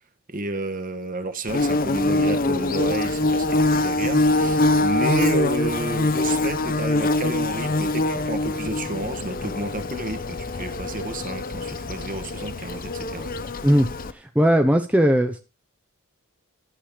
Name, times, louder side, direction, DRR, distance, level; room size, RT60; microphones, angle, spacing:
voice 1, 0.3-13.3, right 2 dB, 40° right, 1.4 m, -31 dB
Bird / Buzz, 1.5-14.1, left 2 dB, 40° left, 0.8 m, -24 dB
voice 2, 14.1-15.4, equal, 5° right, 0.7 m, -18 dB
11.5 x 7.5 x 5.0 m
head